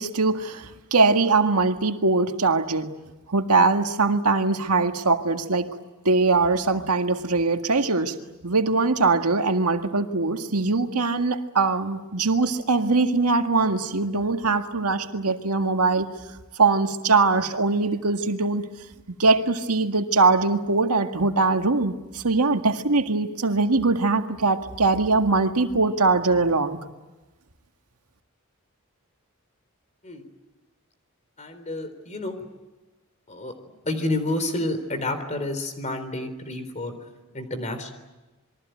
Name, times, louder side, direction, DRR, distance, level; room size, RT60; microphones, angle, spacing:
voice 1, 0.0-2.9 3.3-5.7 6.1-8.1 8.4-16.1 16.6-18.6 19.2-26.8, right 3 dB, 90° right, 6 dB, 1.9 m, -22 dB
voice 2, 31.4-32.4 33.3-33.5 33.8-37.0 37.3-37.9, left 1 dB, 30° left, 9 dB, 3.9 m, -29 dB
27.5 x 23.0 x 9.2 m, 1.1 s
head